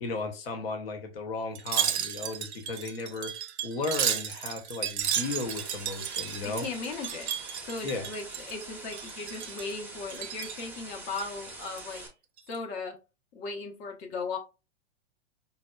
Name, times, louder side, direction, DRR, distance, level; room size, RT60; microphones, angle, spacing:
voice 1, 0.0-6.7 7.8-8.1, left 3 dB, 60° left, 1.0 m, -35 dB
Wind chime, 1.5-8.6 8.9-9.7 10.1-10.6 11.1-12.0 12.4-12.6, right 9 dB, 75° right, 0.5 m, -33 dB
sound 1, 5.0-12.1, right 2 dB, 5° right, 0.6 m, -44 dB
voice 2, 6.4-7.3 7.6-12.0 12.5-13.0 13.3-14.4, left 4 dB, 35° left, 0.8 m, -37 dB
4.4 x 2.1 x 2.3 m
hypercardioid pair, 115°, 33 cm